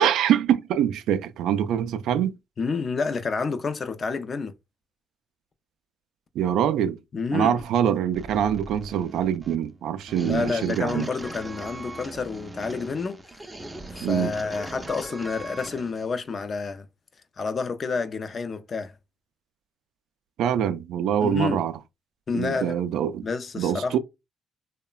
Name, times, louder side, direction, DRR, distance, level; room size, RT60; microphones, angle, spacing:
voice 1, 0.0-2.4 6.4-7.0 7.3-11.1 14.0-14.3 20.4-21.7 22.3-23.3 23.6-24.0, right 9 dB, 85° right, 0.3 m, -24 dB
voice 2, 2.6-4.5 7.1-7.6 10.2-13.4 13.9-16.9 17.4-18.9 21.2-21.6 22.3-22.8 23.2-24.0, left 4 dB, 45° left, 0.4 m, -29 dB
sound 1, 8.1-16.1, right 2 dB, 15° right, 0.4 m, -40 dB
3.0 x 2.1 x 2.3 m
cardioid pair, 90°, 0 cm